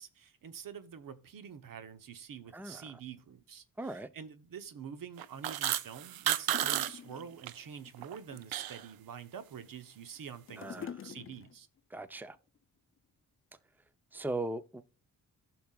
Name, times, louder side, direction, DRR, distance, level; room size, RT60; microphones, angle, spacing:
voice 1, 0.0-11.7, right 7 dB, 70° right, 1.0 m, -47 dB
voice 2, 3.8-4.1 10.6-10.9 11.9-12.4 14.1-14.8, right 2 dB, 5° right, 0.7 m, -38 dB
sound 1, 5.2-6.9 7.2-7.5 7.9-8.8, right 12 dB, 90° right, 0.6 m, -32 dB
sound 2, 5.3-5.4 6.1-6.2 6.5-7.4 7.8-8.6 9.3-9.9 10.2-11.8 12.5-12.6, left 7 dB, 40° left, 0.6 m, -46 dB
14.5 x 6.1 x 2.4 m
cardioid pair, 75°, 35 cm